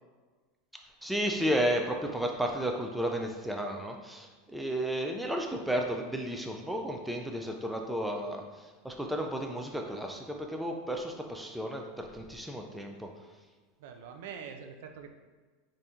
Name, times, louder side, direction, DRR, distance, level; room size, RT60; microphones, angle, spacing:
voice 1, 1.0-13.1, equal, ahead, 2 dB, 0.3 m, -33 dB
voice 2, 13.8-15.1, right 7 dB, 70° right, 6 dB, 0.4 m, -44 dB
4.2 x 2.6 x 3.6 m, 1.4 s
supercardioid pair, 155°, 0 cm